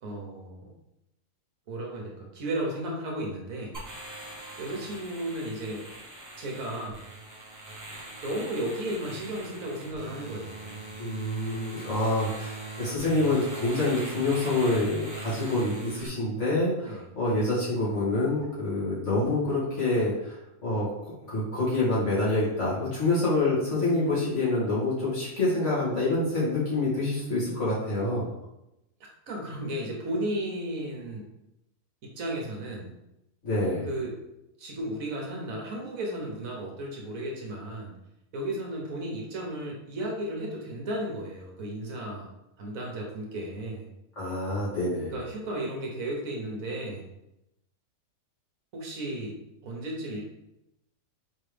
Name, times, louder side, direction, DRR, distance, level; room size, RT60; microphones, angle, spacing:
voice 1, 0.0-0.7 1.7-3.8 4.6-5.9 6.4-7.0 8.2-10.8 11.8-12.0 16.8-17.1 29.3-31.2 32.0-32.9 33.9-34.2 34.6-38.0 38.3-42.3 42.6-43.9 45.1-47.1 48.7-50.2, right 1 dB, 65° right, -1 dB, 1.3 m, -34 dB
sound 1, 3.7-16.1, right 2 dB, 20° right, 0.5 m, -41 dB
voice 2, 11.0-28.3 33.4-33.9 44.2-45.1, left 2 dB, 50° left, -8 dB, 2.1 m, -27 dB
4.5 x 3.2 x 3.3 m, 0.88 s
omnidirectional pair, 1.6 m